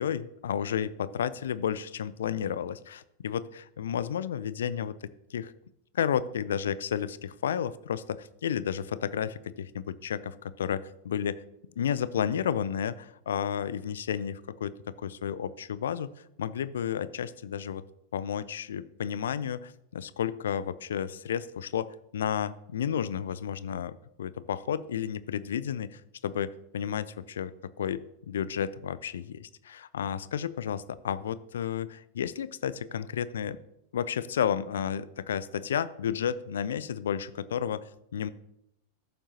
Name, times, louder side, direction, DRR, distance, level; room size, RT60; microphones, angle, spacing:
voice 1, 0.0-4.9 5.3-5.5 5.9-11.4 11.8-16.1 16.4-17.8 18.1-33.6 33.9-38.3, left 8 dB, 65° left, 17 dB, 0.4 m, -32 dB
13.5 x 7.2 x 2.9 m, 0.82 s
figure-of-eight pair, 90°, 0 cm